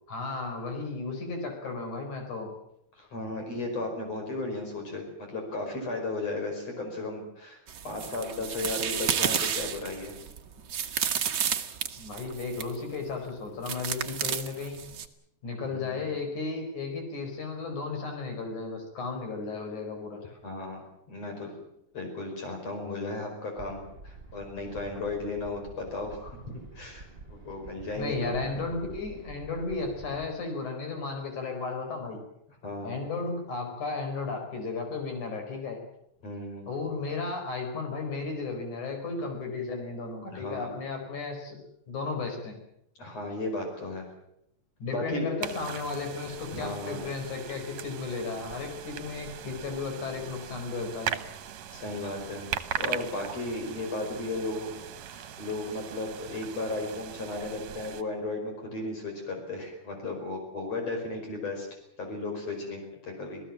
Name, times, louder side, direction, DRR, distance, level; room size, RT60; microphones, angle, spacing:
voice 1, 0.1-2.5 12.0-14.8 15.4-20.2 28.0-32.2 32.8-35.8 36.7-41.6 41.9-42.6 44.8-51.2, left 4 dB, 75° left, 4 dB, 6.2 m, -34 dB
voice 2, 3.0-7.6 7.8-10.1 15.7-16.1 20.4-21.5 21.9-26.4 26.7-28.5 32.6-33.0 36.2-36.7 40.3-40.7 43.0-44.0 44.9-45.3 46.5-47.0 51.7-52.5 52.8-61.7 62.0-63.4, left 2 dB, 55° left, 3 dB, 6.2 m, -35 dB
sound 1, 7.7-12.8 13.7-15.1, right 8 dB, 50° right, 1.4 m, -31 dB
sound 2, 23.5-30.3, right 3 dB, 15° right, 6.0 m, -48 dB
sound 3, 45.4-58.0, right 9 dB, 65° right, 2.3 m, -39 dB
26.5 x 17.5 x 7.5 m, 0.77 s
omnidirectional pair, 3.5 m